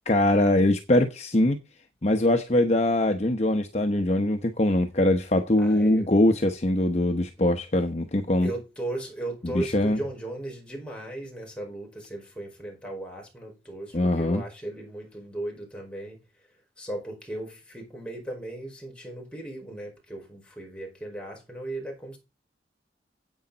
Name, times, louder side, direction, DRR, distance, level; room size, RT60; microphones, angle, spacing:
voice 1, 0.1-1.6 2.0-8.5 9.4-10.0 13.9-14.4, left 1 dB, 40° left, 0.9 m, -22 dB
voice 2, 5.6-6.0 8.4-16.2 16.8-22.2, right 1 dB, 5° left, 4.9 m, -36 dB
10.5 x 8.6 x 4.0 m
head